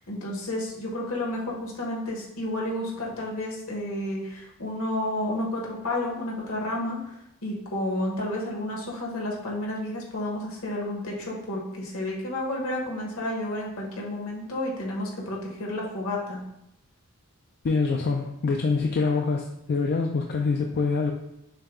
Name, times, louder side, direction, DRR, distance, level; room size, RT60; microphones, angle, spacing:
voice 1, 0.1-7.0 7.4-16.4, left 1 dB, 70° left, -2 dB, 1.3 m, -31 dB
voice 2, 17.6-21.1, left 4 dB, 50° left, 2 dB, 0.4 m, -25 dB
6.5 x 2.2 x 3.6 m, 0.82 s
head